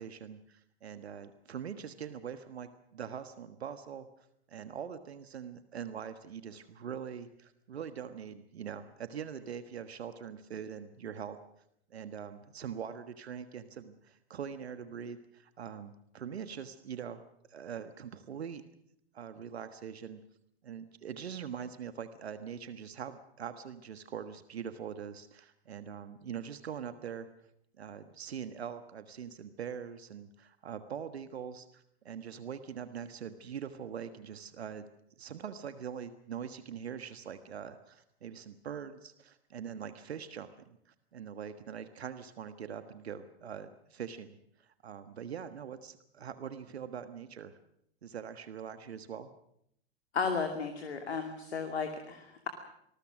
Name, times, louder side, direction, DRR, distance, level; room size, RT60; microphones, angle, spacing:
voice 1, 0.0-4.1 4.5-11.4 11.9-17.2 17.5-18.6 19.1-20.2 20.6-27.3 27.8-34.9 35.2-44.3 44.6-47.5 48.0-49.3, right 8 dB, 70° right, 10 dB, 1.5 m, -43 dB
voice 2, 50.1-52.5, left 5 dB, 70° left, 5 dB, 2.6 m, -34 dB
26.5 x 20.5 x 6.2 m, 0.73 s
figure-of-eight pair, 90°, 33 cm